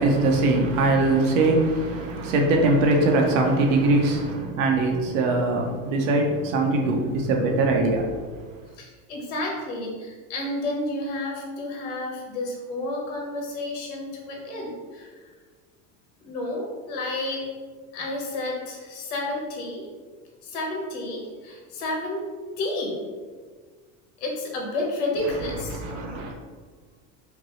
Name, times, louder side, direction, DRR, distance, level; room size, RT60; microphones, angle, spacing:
voice 1, 0.0-8.1 25.7-26.3, right 2 dB, 85° right, 2 dB, 0.8 m, -22 dB
voice 2, 8.8-15.3 16.2-17.5 17.9-19.9 20.4-22.3 22.6-23.0 24.2-25.8, left 2 dB, 70° left, -1 dB, 1.2 m, -31 dB
5.1 x 2.0 x 3.1 m, 1.5 s
cardioid pair, 170°, 37 cm